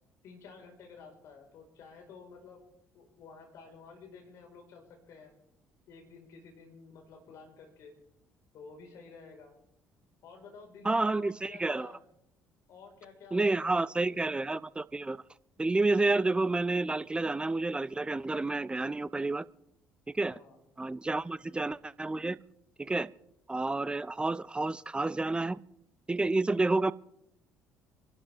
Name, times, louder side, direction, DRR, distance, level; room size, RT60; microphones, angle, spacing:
voice 1, 0.2-2.6 2.9-5.3 5.9-7.9 8.5-9.6 10.2-12.0 12.7-14.5 20.3-20.6 26.5-26.7, left 5 dB, 60° left, 4.8 m, -52 dB
voice 2, 10.8-11.9 13.3-15.2 15.6-19.4 20.1-20.4 20.8-22.4 22.8-23.1 23.5-25.6 26.1-26.9, right 2 dB, 15° right, 0.6 m, -29 dB
27.5 x 12.0 x 3.6 m
hypercardioid pair, 55°, 6 cm